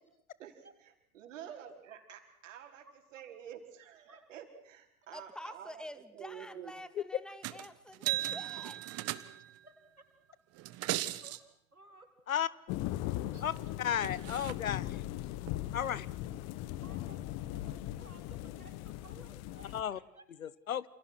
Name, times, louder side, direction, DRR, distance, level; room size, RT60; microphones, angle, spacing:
voice 1, 0.4-6.7, right 9 dB, 60° right, 5 dB, 5.1 m, -49 dB
voice 2, 5.1-8.8, left 1 dB, ahead, 13 dB, 1.9 m, -48 dB
sound 1, 7.4-7.7 7.9-9.6 10.6-11.4 13.6-13.7 14.0-14.5 15.5-15.6, right 15 dB, 35° right, 1.6 m, -37 dB
voice 3, 9.6-10.0 10.3-10.4 10.7-10.8 11.2-11.4 11.7-12.1 13.2-13.8 14.3-14.5 16.3-16.4 16.8-17.2 17.5-20.8, right 2 dB, 90° right, 5 dB, 4.1 m, -57 dB
sound 2, 12.7-19.8, left 15 dB, 40° left, 1.4 m, -39 dB
voice 4, 13.8-14.8 15.7-16.1 19.7-20.0 20.4-20.8, left 9 dB, 70° left, 20 dB, 1.3 m, -33 dB
28.5 x 28.5 x 6.2 m, 0.68 s
figure-of-eight pair, 90°, 42 cm